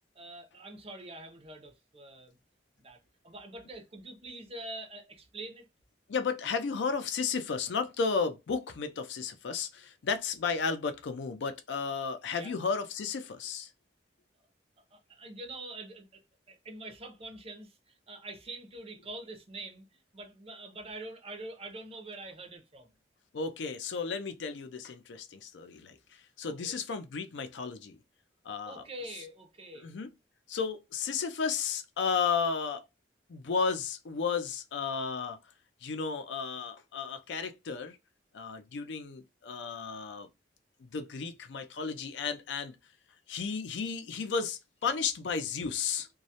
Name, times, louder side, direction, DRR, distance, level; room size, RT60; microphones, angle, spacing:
voice 1, 0.2-2.4 2.8-5.7 12.3-12.5 14.9-16.2 16.5-23.0 26.4-26.7 28.7-30.0, right 2 dB, 35° right, 0.5 m, -45 dB
voice 2, 6.1-13.7 23.3-28.0 28.4-28.8 29.7-30.1 30.5-32.8 33.3-35.4 35.8-38.0 38.3-40.3 40.8-42.8 43.3-46.1, left 5 dB, 85° left, 0.4 m, -33 dB
2.2 x 2.0 x 2.7 m
head